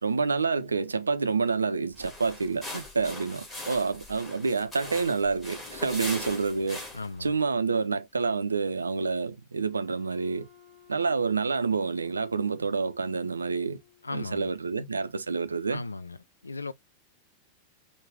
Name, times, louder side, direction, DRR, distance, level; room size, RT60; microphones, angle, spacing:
voice 1, 0.0-6.8 7.2-10.5 10.9-13.8 14.1-15.8, right 4 dB, 75° right, 0.4 m, -28 dB
sound 1, 1.9-7.2, left 1 dB, 10° left, 2.1 m, -40 dB
voice 2, 6.9-7.3 14.0-14.5 15.7-16.2 16.4-16.7, left 3 dB, 80° left, 0.4 m, -36 dB
Wind instrument woodwind instrument, 9.6-14.3, left 9 dB, 35° left, 1.1 m, -57 dB
4.7 x 2.3 x 3.4 m
figure-of-eight pair, 90°, 0 cm